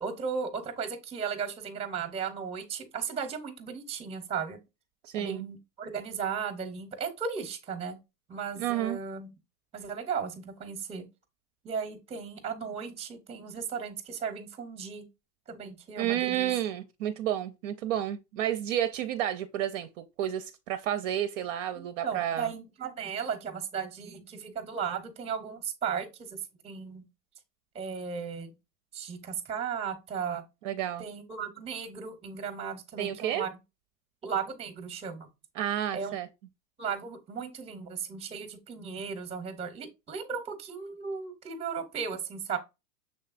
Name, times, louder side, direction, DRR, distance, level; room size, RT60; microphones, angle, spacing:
voice 1, 0.0-4.6 5.2-8.0 8.3-9.3 9.7-11.1 11.6-15.1 15.5-16.5 21.8-27.0 27.7-28.5 28.9-30.4 31.0-33.5 34.2-35.3 35.9-36.2 36.8-42.6, right 6 dB, 15° right, 0.7 m, -36 dB
voice 2, 5.0-5.5 8.6-9.0 16.0-22.5 30.6-31.0 33.0-33.5 35.6-36.3, right 11 dB, 50° right, 0.5 m, -31 dB
6.3 x 3.3 x 2.4 m
hypercardioid pair, 125°, 49 cm